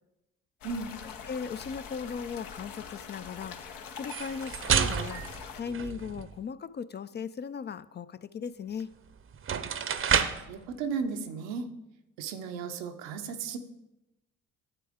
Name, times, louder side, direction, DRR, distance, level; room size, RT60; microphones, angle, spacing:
sound 1, 0.6-5.6, left 7 dB, 70° left, 0.9 m, -43 dB
voice 1, 1.0-3.7 4.0-5.2 5.5-8.9, left 6 dB, 30° left, 14 dB, 0.4 m, -38 dB
sound 2, 4.0-6.4 8.8-8.9 9.3-10.5, right 7 dB, 35° right, 0.7 m, -29 dB
voice 2, 10.1-11.7 12.2-13.6, right 5 dB, 85° right, 7 dB, 0.8 m, -35 dB
9.7 x 7.7 x 3.5 m, 0.93 s
hypercardioid pair, 55°, 35 cm